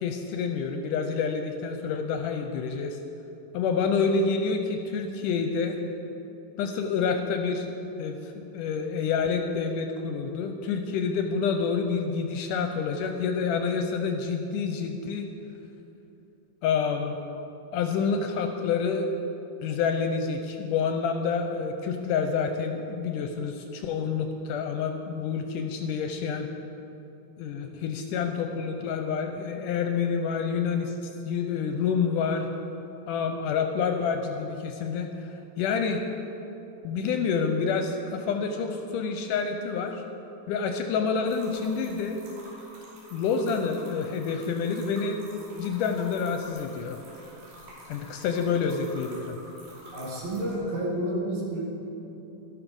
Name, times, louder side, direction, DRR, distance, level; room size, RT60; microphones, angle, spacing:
voice 1, 0.0-3.0 3.5-5.8 6.6-7.7 8.0-15.3 16.6-17.2 17.7-19.1 19.6-26.5 27.4-32.5 33.1-35.3 35.6-36.0 36.8-40.0 40.5-42.2 43.1-45.2 45.6-47.0 47.9-49.4, left 5 dB, 75° left, 5 dB, 2.0 m, -28 dB
sound 1, 41.3-50.6, right 1 dB, 90° right, 4.7 m, -49 dB
voice 2, 49.9-51.6, right 1 dB, 55° right, -4 dB, 3.5 m, -30 dB
12.5 x 12.0 x 5.3 m, 3.0 s
omnidirectional pair, 4.0 m